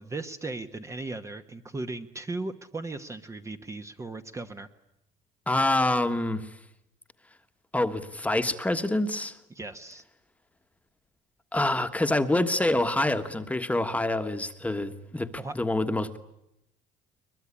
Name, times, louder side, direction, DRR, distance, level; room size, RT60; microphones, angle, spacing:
voice 1, 0.0-4.7 9.5-10.0 15.4-15.5, right 2 dB, 20° right, 7 dB, 1.2 m, -37 dB
voice 2, 5.5-6.5 7.7-9.3 11.5-16.2, left 2 dB, 10° left, 8 dB, 1.4 m, -26 dB
22.5 x 21.5 x 9.9 m, 0.84 s
cardioid pair, 120°, 16 cm